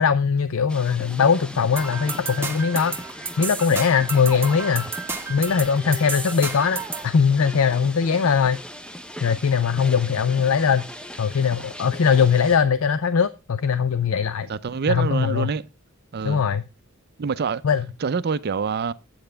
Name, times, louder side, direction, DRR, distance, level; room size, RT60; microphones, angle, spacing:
voice 1, 0.0-3.0 3.4-4.9 5.3-8.6 9.2-10.9 11.2-14.5 14.9-15.5 16.2-16.6 17.6-17.8, left 6 dB, 75° left, 0.5 m, -20 dB
sound 1, 0.7-12.6, equal, 5° left, 0.6 m, -39 dB
sound 2, 1.8-7.1, right 4 dB, 10° right, 1.1 m, -32 dB
voice 2, 14.5-15.6 16.1-16.5 17.2-17.6 18.0-18.9, right 5 dB, 50° right, 0.5 m, -26 dB
8.7 x 7.9 x 3.3 m
head